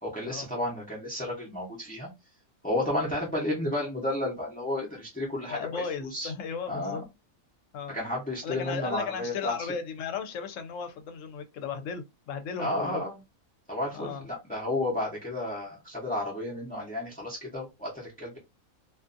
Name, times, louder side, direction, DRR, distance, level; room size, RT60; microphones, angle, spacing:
voice 1, 0.0-2.1 2.6-6.3 6.7-7.0 7.9-9.7 12.6-13.2 13.7-18.4, left 1 dB, 10° left, 0.6 m, -32 dB
voice 2, 5.5-7.0 7.7-8.0 8.4-13.0 13.9-14.3, left 6 dB, 70° left, 0.9 m, -35 dB
2.5 x 2.4 x 2.5 m
omnidirectional pair, 1.4 m